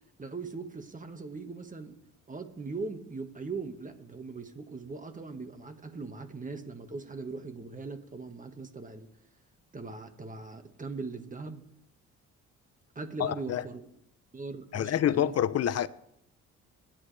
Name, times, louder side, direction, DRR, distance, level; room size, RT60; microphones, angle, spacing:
voice 1, 0.2-2.0 2.3-9.1 9.7-11.6 12.9-13.8 14.3-15.3, right 4 dB, 25° right, 1.7 m, -40 dB
voice 2, 13.2-13.6 14.7-15.9, left 10 dB, 55° left, 0.8 m, -27 dB
24.5 x 10.5 x 3.4 m
cardioid pair, 90°, 30 cm